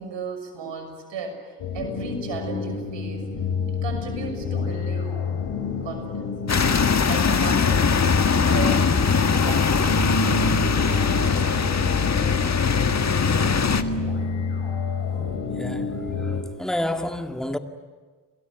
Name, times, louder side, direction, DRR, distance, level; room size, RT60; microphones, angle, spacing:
voice 1, 0.0-3.3 3.7-5.2 5.8-6.4 7.0-9.9, right 4 dB, 65° right, 6.5 m, -35 dB
sound 1, 1.6-16.4, left 5 dB, 65° left, 4.0 m, -28 dB
sound 2, 6.5-13.8, left 5 dB, 35° left, 1.8 m, -21 dB
voice 2, 15.6-17.6, left 1 dB, ahead, 2.2 m, -30 dB
28.0 x 21.5 x 9.3 m
hypercardioid pair, 45°, 47 cm